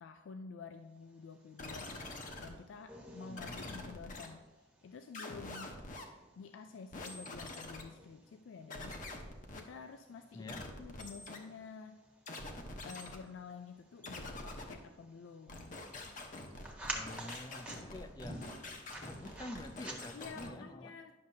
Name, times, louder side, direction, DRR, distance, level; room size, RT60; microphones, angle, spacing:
voice 1, 0.0-2.0 2.4-4.5 4.8-5.7 6.4-8.9 9.5-12.0 12.9-15.8 17.2-18.0 20.1-21.1, left 5 dB, 90° left, 8 dB, 0.4 m, -50 dB
sound 1, 1.0-20.5, right 1 dB, 10° right, 1.1 m, -52 dB
sound 2, 1.6-2.5 3.4-4.3 5.1-6.0 6.9-7.8 8.7-9.6 10.5-11.4 12.3-13.2 14.0-14.7 15.5-20.5, left 2 dB, 45° left, 0.9 m, -46 dB
voice 2, 3.3-3.8 10.3-10.7 16.9-18.5 19.0-20.9, left 1 dB, 20° left, 9 dB, 0.4 m, -48 dB
10.5 x 6.4 x 2.7 m, 1.2 s
head